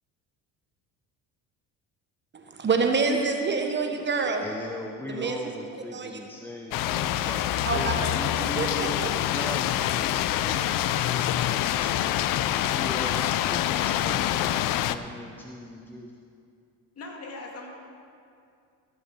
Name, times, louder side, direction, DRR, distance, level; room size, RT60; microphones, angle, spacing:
voice 1, 2.3-4.5 5.1-5.4 5.9-6.2 7.7-8.3 8.6-9.1, right 4 dB, 30° right, 4 dB, 1.0 m, -27 dB
voice 2, 4.4-9.0 9.3-10.8 11.1-16.1, equal, 5° left, 1 dB, 0.6 m, -40 dB
sound 1, 6.7-15.0, left 12 dB, 60° left, 0.5 m, -26 dB
voice 3, 17.0-17.7, left 2 dB, 40° left, 0 dB, 2.2 m, -39 dB
14.0 x 6.9 x 6.1 m, 2.4 s
cardioid pair, 110°, 38 cm